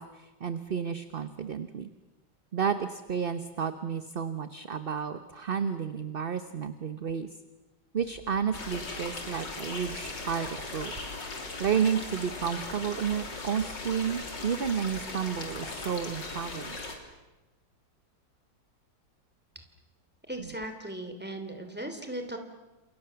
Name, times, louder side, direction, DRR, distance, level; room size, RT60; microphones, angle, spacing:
voice 1, 0.0-1.9 2.5-7.3 7.9-10.9 11.6-16.8, right 7 dB, 40° right, 10 dB, 1.0 m, -31 dB
sound 1, 8.5-17.0, left 3 dB, 80° left, 4.0 m, -38 dB
voice 2, 20.3-22.4, right 1 dB, 5° right, 6 dB, 3.0 m, -37 dB
29.5 x 27.5 x 7.0 m, 1.1 s
omnidirectional pair, 1.9 m